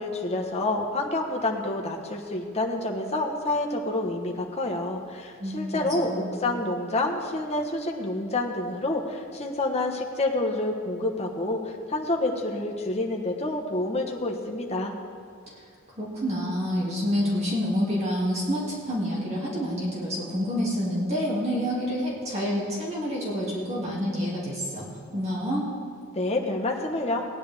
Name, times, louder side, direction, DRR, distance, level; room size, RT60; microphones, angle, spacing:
voice 1, 0.0-14.9 26.1-27.3, left 2 dB, 30° left, 0 dB, 1.2 m, -28 dB
voice 2, 5.4-6.4 16.0-25.6, equal, 30° right, -6 dB, 2.4 m, -28 dB
18.5 x 9.8 x 3.5 m, 2.5 s
head